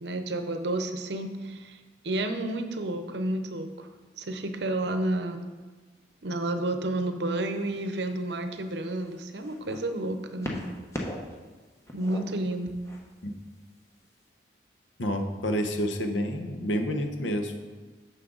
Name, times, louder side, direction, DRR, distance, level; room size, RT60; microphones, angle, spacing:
voice 1, 0.0-3.9 4.2-5.5 6.2-10.6 11.9-12.7, right 1 dB, 65° right, 8 dB, 0.7 m, -31 dB
sound 1, 7.3-7.7 8.5-9.8 10.4-11.3 11.6-13.0 13.9-14.0, left 1 dB, 15° left, 0.9 m, -38 dB
voice 2, 15.0-17.6, equal, 85° left, 6 dB, 0.9 m, -29 dB
9.6 x 6.4 x 3.9 m, 1.3 s
head